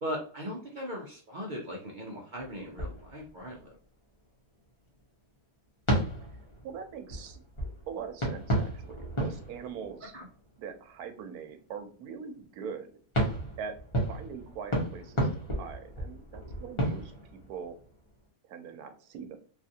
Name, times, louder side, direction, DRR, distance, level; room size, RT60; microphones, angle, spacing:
voice 1, 0.0-3.7 10.0-10.3, equal, 55° right, -2 dB, 0.5 m, -38 dB
sound 1, 2.3-3.6 4.2-4.3 4.9-5.0 5.9-10.6 13.1-18.2, right 1 dB, 25° left, 0.9 m, -33 dB
voice 2, 6.6-7.4 7.9-10.1 10.6-12.9 13.6-13.8 14.1-15.3 15.6-17.1 17.5-17.8 18.5-19.4, right 6 dB, 90° right, 8 dB, 1.1 m, -42 dB
3.3 x 2.4 x 2.7 m, 0.42 s
omnidirectional pair, 1.6 m